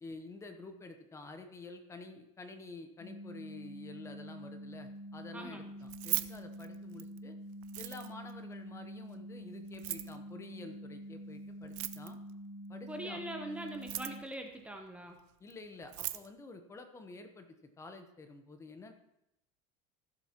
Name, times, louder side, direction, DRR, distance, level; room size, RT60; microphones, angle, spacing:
voice 1, 0.0-7.4 7.8-12.2 12.7-13.2 15.4-17.5 17.8-18.9, left 3 dB, 15° left, 7 dB, 0.9 m, -49 dB
sound 1, 3.0-14.2, equal, 60° left, 2.1 m, -47 dB
voice 2, 5.3-5.7 12.9-15.2, right 1 dB, 10° right, 3 dB, 0.8 m, -42 dB
Keys jangling, 5.8-7.2 7.6-8.3 9.7-10.2 11.6-12.3 13.7-14.3 15.5-15.6 15.8-16.3, right 18 dB, 70° right, 0.6 m, -38 dB
16.0 x 7.5 x 3.0 m, 0.83 s
supercardioid pair, 140°, 16 cm